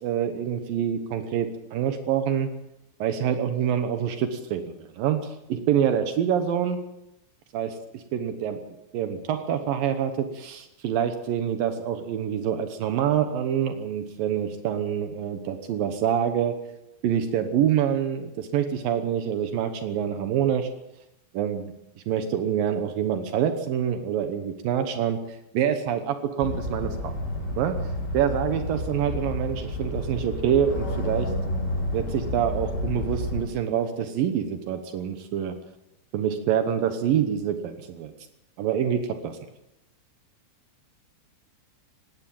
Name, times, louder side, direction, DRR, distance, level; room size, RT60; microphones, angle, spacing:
voice 1, 0.0-2.5 3.0-6.8 7.5-8.6 8.9-16.5 17.0-20.7 21.3-21.7 22.1-27.1 27.6-27.7 28.1-31.3 31.9-35.5 36.1-38.1 38.6-39.4, right 9 dB, 85° right, 8 dB, 2.0 m, -26 dB
sound 1, 26.4-33.4, left 1 dB, 60° left, 7.8 m, -30 dB
19.5 x 17.5 x 7.7 m, 0.86 s
omnidirectional pair, 5.8 m